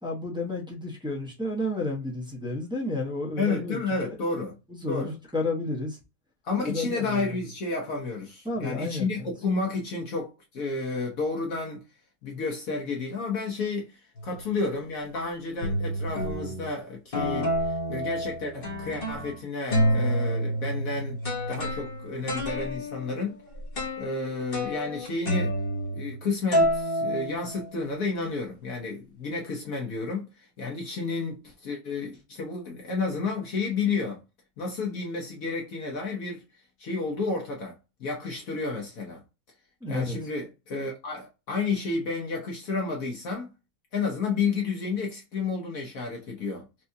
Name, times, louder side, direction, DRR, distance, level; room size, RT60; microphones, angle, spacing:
voice 1, 0.0-4.1 4.7-6.0 6.7-7.3 8.4-9.3 39.8-40.1, left 2 dB, 5° right, 0.7 m, -31 dB
voice 2, 3.4-4.5 4.9-5.1 6.4-11.8 12.2-21.2 21.5-23.4 24.0-25.5 25.9-34.2 34.6-39.2 39.9-43.5 43.9-46.7, left 4 dB, 60° left, 1.2 m, -31 dB
sound 1, 14.2-14.5 15.1-15.2 15.6-16.7 17.1-19.4 19.7-26.2 26.5-27.9, equal, 40° left, 1.0 m, -29 dB
4.5 x 2.3 x 2.7 m
omnidirectional pair, 1.7 m